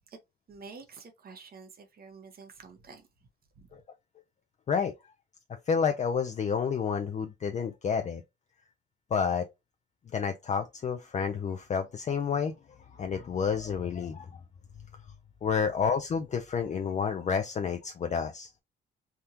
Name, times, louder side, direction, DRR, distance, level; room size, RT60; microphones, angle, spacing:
voice 1, 0.5-3.1 3.6-3.8, right 4 dB, 50° right, 1.1 m, -49 dB
voice 2, 5.7-8.2 9.1-9.4 10.1-12.5 12.8-14.4 15.4-18.5, left 6 dB, 35° left, 0.5 m, -30 dB
3.5 x 2.3 x 2.8 m
cardioid pair, 90°, 20 cm